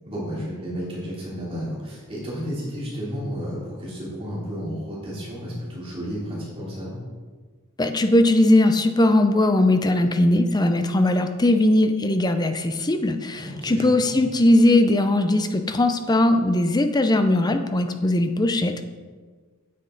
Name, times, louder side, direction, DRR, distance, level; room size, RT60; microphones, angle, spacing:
voice 1, 0.0-7.0 13.4-14.2, equal, 25° right, -7 dB, 3.1 m, -32 dB
voice 2, 7.8-18.8, left 1 dB, 20° left, 8 dB, 0.5 m, -19 dB
9.2 x 7.8 x 3.9 m, 1.4 s
head